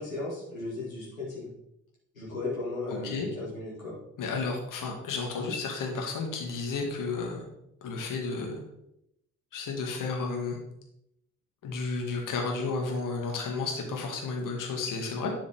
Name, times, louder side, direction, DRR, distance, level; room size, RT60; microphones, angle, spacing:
voice 1, 0.0-1.5 2.1-4.0, left 2 dB, 85° left, -7 dB, 1.9 m, -36 dB
voice 2, 2.9-3.3 4.2-7.5 7.8-8.6 9.5-10.6 11.6-15.3, left 4 dB, 50° left, 1 dB, 2.0 m, -32 dB
11.0 x 4.9 x 3.5 m, 0.80 s
figure-of-eight pair, 40°, 40 cm